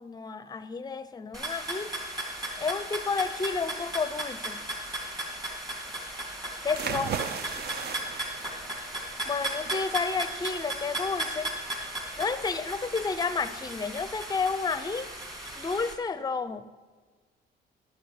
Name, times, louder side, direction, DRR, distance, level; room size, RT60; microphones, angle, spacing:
voice 1, 0.0-1.9 2.6-4.7 6.6-7.1 9.2-11.5 12.2-15.1 15.6-16.7, left 4 dB, 20° left, 13 dB, 0.5 m, -31 dB
sound 1, 1.3-15.9, right 1 dB, 20° right, 2.0 m, -36 dB
sound 2, 6.7-16.0, right 7 dB, 55° right, 0.5 m, -40 dB
11.0 x 4.6 x 7.2 m, 1.4 s
cardioid pair, 90°, 20 cm